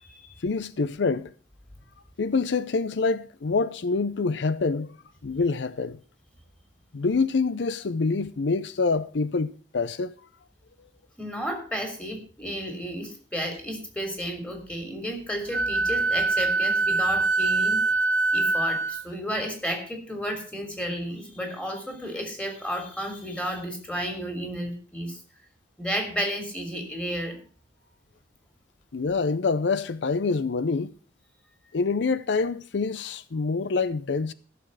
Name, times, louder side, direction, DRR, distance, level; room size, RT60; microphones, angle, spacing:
voice 1, 0.4-1.3 2.2-5.0 5.2-6.0 6.9-10.1 28.9-30.9 31.7-34.3, left 4 dB, 80° left, 0.6 m, -26 dB
voice 2, 11.2-17.8 18.3-25.2 25.8-27.4, equal, 5° left, 3.2 m, -32 dB
Wind instrument woodwind instrument, 15.5-19.0, right 3 dB, 75° right, 1.0 m, -24 dB
15.0 x 6.9 x 6.4 m
head